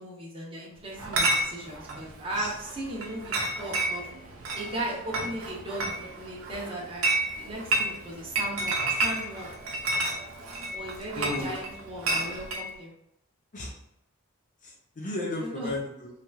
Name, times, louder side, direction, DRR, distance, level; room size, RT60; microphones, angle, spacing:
voice 1, 0.0-4.1 4.5-5.8 6.1-7.1 7.4-9.5 10.7-12.9 15.4-15.7, right 1 dB, 25° right, -3 dB, 0.7 m, -37 dB
Chatter / Chink clink, 1.0-12.7, right 2 dB, 75° right, 0.6 m, -31 dB
voice 2, 11.2-11.5 13.5-13.7 14.6-16.1, left 1 dB, 40° left, -2 dB, 0.5 m, -34 dB
3.2 x 2.8 x 2.3 m, 0.82 s
head